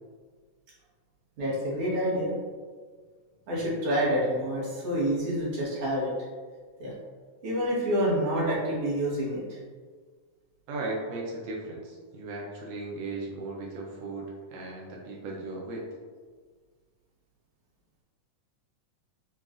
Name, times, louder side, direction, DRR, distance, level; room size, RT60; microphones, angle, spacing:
voice 1, 1.4-2.3 3.5-6.1 6.8-6.9 7.4-9.6, equal, 55° right, -7 dB, 1.6 m, -28 dB
voice 2, 10.7-15.9, right 2 dB, 90° right, -3 dB, 1.4 m, -36 dB
6.5 x 2.3 x 2.4 m, 1.5 s
omnidirectional pair, 3.6 m